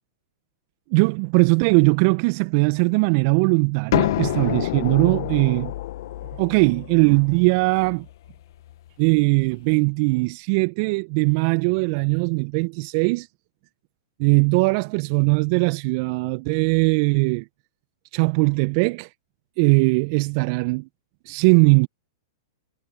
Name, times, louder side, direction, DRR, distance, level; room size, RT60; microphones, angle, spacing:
voice 1, 0.9-5.7 6.4-8.0 9.0-13.3 14.2-17.4 18.1-19.1 19.6-20.9 21.3-21.9, right 31 dB, 45° right, 1.4 m, -20 dB
sound 1, 3.9-9.5, left 14 dB, 60° left, 2.2 m, -28 dB
hypercardioid pair, 105°, 2 cm